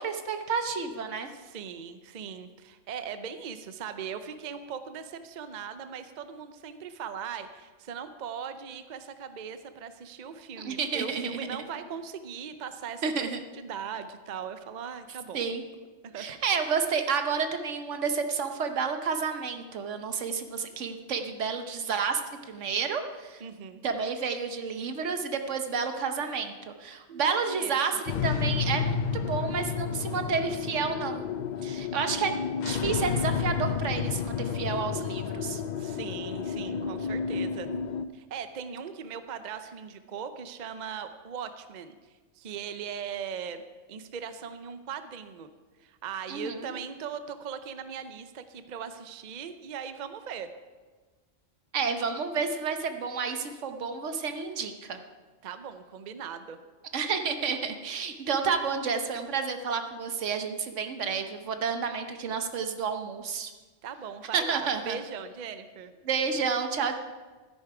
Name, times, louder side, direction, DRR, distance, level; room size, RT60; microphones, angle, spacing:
voice 1, 0.0-1.3 10.6-11.6 13.0-13.4 15.3-15.6 16.2-22.2 22.5-23.4 23.8-31.2 31.6-32.3 32.6-35.6 46.3-46.7 51.7-55.0 56.9-63.5 64.3-65.0 66.0-66.9, right 5 dB, 75° right, 7 dB, 1.2 m, -30 dB
voice 2, 1.3-15.5 16.0-16.4 23.4-23.8 27.1-27.9 35.8-37.7 38.1-41.9 42.4-43.6 43.9-45.5 45.8-50.5 55.4-56.6 63.8-65.9, right 7 dB, 45° right, 10 dB, 0.7 m, -39 dB
sound 1, 28.1-38.1, left 6 dB, 70° left, 0.4 m, -31 dB
13.0 x 9.9 x 4.8 m, 1.3 s
omnidirectional pair, 1.3 m